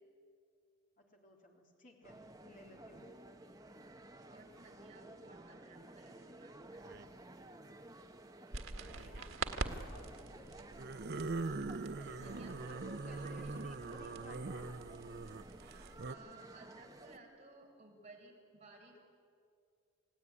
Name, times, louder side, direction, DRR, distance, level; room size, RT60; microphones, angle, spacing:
voice 1, 1.0-3.2 8.7-9.4 9.9-10.6 12.1-14.7, left 2 dB, 40° left, 0 dB, 3.6 m, -58 dB
sound 1, 2.0-17.2, right 1 dB, 15° right, 1.1 m, -55 dB
voice 2, 4.3-6.8 11.7-14.1 15.7-19.0, right 3 dB, 35° right, 0 dB, 4.5 m, -59 dB
sound 2, 6.8-7.2 8.7-9.3 10.7-16.1, right 3 dB, 50° right, 0.6 m, -42 dB
sound 3, 8.5-16.1, right 3 dB, 90° right, 1.8 m, -46 dB
29.5 x 17.0 x 9.8 m, 2.3 s
head